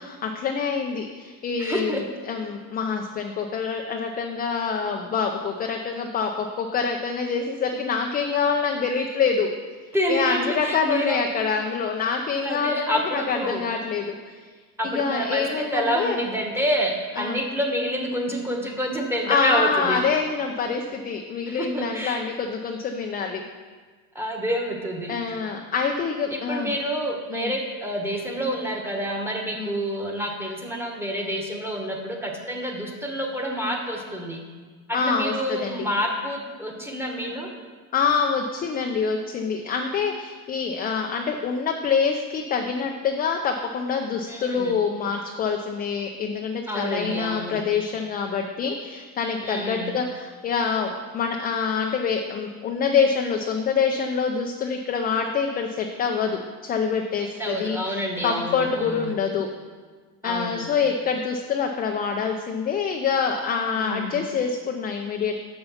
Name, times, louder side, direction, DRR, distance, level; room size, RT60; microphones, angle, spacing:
voice 1, 0.0-9.5 10.1-14.4 14.8-16.2 17.2-17.4 19.3-23.4 25.1-26.7 27.3-27.5 29.6-29.8 34.9-35.9 37.9-59.5 60.2-65.4, left 5 dB, 25° left, 3 dB, 0.4 m, -26 dB
voice 2, 1.6-2.0 9.9-11.2 12.4-13.7 14.8-20.0 21.5-22.2 24.1-25.3 26.3-34.4 34.9-37.5 44.3-44.8 46.7-47.6 49.4-49.9 57.2-59.1 60.2-60.6 63.8-64.3, equal, 5° right, 0 dB, 1.2 m, -28 dB
6.6 x 5.7 x 5.6 m, 1.5 s
supercardioid pair, 125°, 40 cm